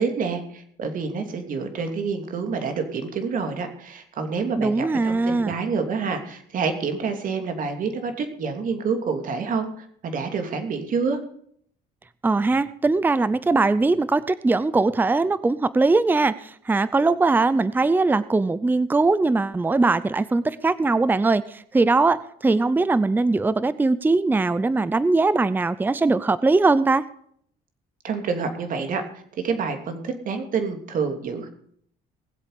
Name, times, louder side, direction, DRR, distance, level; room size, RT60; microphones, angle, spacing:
voice 1, 0.0-11.2 28.0-29.0 29.4-31.5, right 5 dB, 55° right, 6 dB, 3.0 m, -27 dB
voice 2, 4.6-5.5 12.2-16.3 16.7-21.4 21.7-27.0, right 3 dB, 10° right, 16 dB, 0.6 m, -20 dB
19.5 x 8.1 x 5.1 m, 0.64 s
cardioid pair, 110°, 17 cm